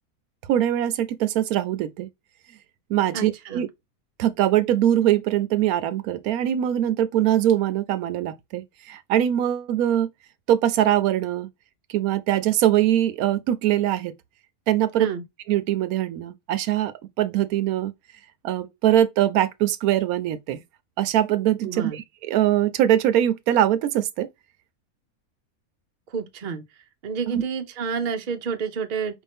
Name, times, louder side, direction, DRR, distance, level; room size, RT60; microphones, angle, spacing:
voice 1, 0.5-2.1 2.9-3.7 4.2-10.1 10.5-11.5 11.9-14.1 14.7-15.1 15.5-17.9 18.4-20.6 21.0-24.3 27.3-27.4, right 11 dB, 80° right, 1.0 m, -22 dB
voice 2, 3.1-3.7 15.0-15.2 21.6-22.0 26.1-26.6 27.0-29.2, right 6 dB, 45° right, 0.7 m, -29 dB
4.9 x 2.6 x 3.4 m
omnidirectional pair, 1.5 m